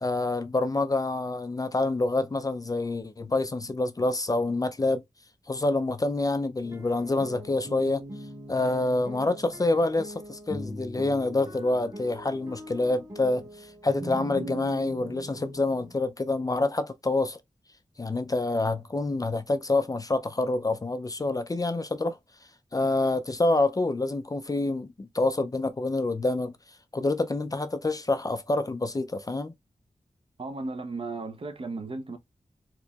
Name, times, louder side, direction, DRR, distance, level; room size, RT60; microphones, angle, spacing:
voice 1, 0.0-5.0 5.5-8.0 8.5-17.4 18.0-22.2 22.7-26.5 26.9-29.5, left 2 dB, 30° left, 0.4 m, -27 dB
sound 1, 6.6-16.0, right 1 dB, 25° right, 1.0 m, -41 dB
voice 2, 30.4-32.2, right 3 dB, 45° right, 0.6 m, -35 dB
4.4 x 2.9 x 2.3 m
wide cardioid pair, 105°, 13 cm